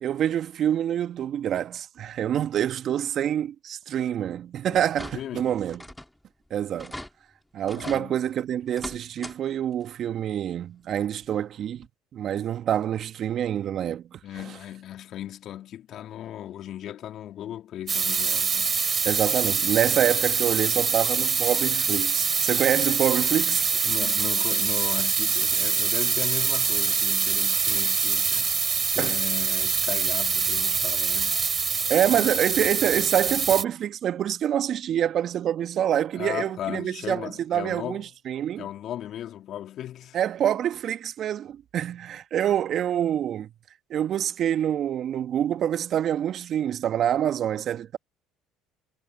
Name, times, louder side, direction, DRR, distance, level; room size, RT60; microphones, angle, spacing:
voice 1, 0.0-5.8 6.5-7.0 7.5-11.9 12.1-14.2 19.0-23.6 29.0-29.2 31.9-38.7 40.1-43.5 43.9-48.0, right 10 dB, 50° right, 1.7 m, -26 dB
sound 1, 4.7-5.4 5.7-6.2 6.5-6.6 6.8-7.1 7.7-8.0 8.7-9.4 9.7-9.8 11.2-11.3 11.8-11.9, left 1 dB, 5° left, 2.9 m, -40 dB
voice 2, 5.1-5.5 7.8-8.2 14.2-18.8 23.9-28.6 28.9-31.4 32.1-32.3 36.2-38.0 38.6-40.2, left 11 dB, 55° left, 2.9 m, -36 dB
sound 2, 17.9-33.6, right 6 dB, 35° right, 3.0 m, -24 dB
hypercardioid pair, 65°, 0 cm